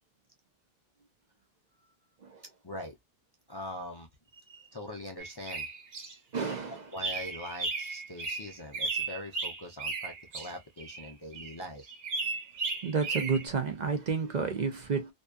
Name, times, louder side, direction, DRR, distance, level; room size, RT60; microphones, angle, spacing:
voice 1, 2.6-3.0 3.5-4.1 4.7-5.7 6.9-11.8, left 1 dB, 35° left, 0.4 m, -42 dB
sound 1, 5.2-6.1 6.5-6.6 6.9-13.5, right 4 dB, 75° right, 1.1 m, -35 dB
voice 2, 6.3-6.9 12.8-15.1, right 5 dB, 50° right, 0.6 m, -31 dB
2.6 x 2.3 x 2.2 m
omnidirectional pair, 1.0 m